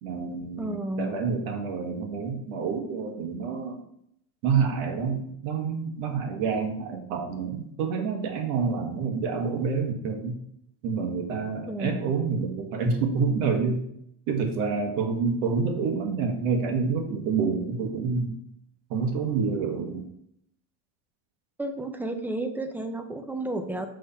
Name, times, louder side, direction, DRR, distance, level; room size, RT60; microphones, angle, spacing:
voice 1, 0.0-3.8 4.4-10.4 10.8-13.9 14.3-18.3 18.9-20.0, right 5 dB, 80° right, 4 dB, 1.5 m, -28 dB
voice 2, 0.6-1.2 11.7-12.2 21.6-23.9, right 1 dB, 5° right, 7 dB, 0.4 m, -32 dB
6.3 x 3.4 x 5.6 m, 0.72 s
cardioid pair, 145°, 40 cm